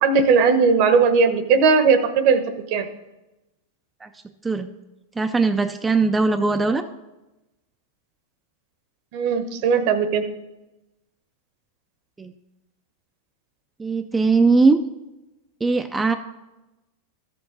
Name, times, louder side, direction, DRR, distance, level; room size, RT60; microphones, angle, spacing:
voice 1, 0.0-2.4 2.7-2.8 9.1-10.2, right 5 dB, 55° right, 9 dB, 1.1 m, -18 dB
voice 2, 5.2-6.8 12.2-12.3 13.8-14.8 15.6-16.1, right 3 dB, 15° right, 7 dB, 0.5 m, -20 dB
13.0 x 6.9 x 3.9 m, 1.0 s
hypercardioid pair, 120°, 0 cm